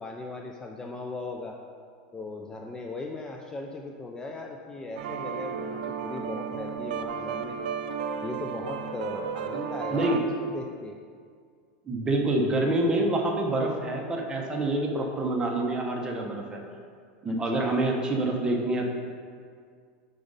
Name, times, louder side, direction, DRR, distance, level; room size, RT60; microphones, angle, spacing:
voice 1, 0.0-1.6 2.1-7.6 8.2-11.0 17.3-17.7, left 3 dB, 15° left, 1 dB, 0.4 m, -38 dB
sound 1, 5.0-10.2, right 7 dB, 85° right, 0.4 m, -33 dB
voice 2, 9.9-10.2 11.9-16.6 17.2-18.9, right 2 dB, 20° right, 1 dB, 0.8 m, -26 dB
5.0 x 4.0 x 5.1 m, 2.1 s
supercardioid pair, 130°, 5 cm